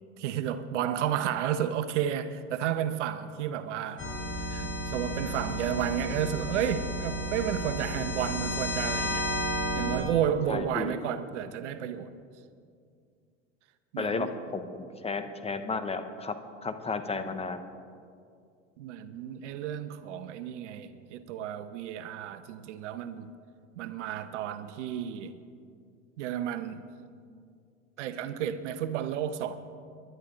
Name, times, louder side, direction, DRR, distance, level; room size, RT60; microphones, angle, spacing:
voice 1, 0.2-4.1 4.4-9.3 9.7-12.1 13.9-14.3 18.8-23.3 23.8-25.3 26.2-26.9 28.0-29.5, right 9 dB, 75° right, 12 dB, 0.9 m, -32 dB
sound 1, 4.0-10.0, equal, 35° left, 4.3 m, -32 dB
voice 2, 10.5-10.9 14.0-16.3 16.6-17.6, left 4 dB, 15° left, 9 dB, 0.9 m, -33 dB
21.0 x 11.5 x 3.8 m, 2.3 s
hypercardioid pair, 100°, 36 cm